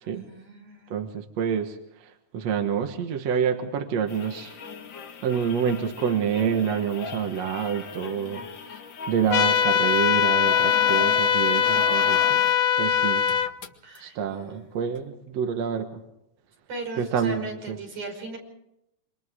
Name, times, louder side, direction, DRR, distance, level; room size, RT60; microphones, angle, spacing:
voice 1, 0.0-0.9 13.8-15.0 16.7-18.4, right 3 dB, 90° right, 1 dB, 7.1 m, -38 dB
voice 2, 0.9-1.8 2.3-4.5 5.2-8.5 9.1-12.4 12.8-13.2 14.0-16.0 17.0-17.8, right 7 dB, 65° right, 5 dB, 2.5 m, -27 dB
sound 1, 4.1-12.6 12.9-13.0 13.2-14.0 15.0-15.1, left 5 dB, 45° left, 2.3 m, -38 dB
sound 2, 9.3-13.5, left 9 dB, 70° left, 1.9 m, -21 dB
28.0 x 26.0 x 3.8 m, 0.80 s
omnidirectional pair, 3.4 m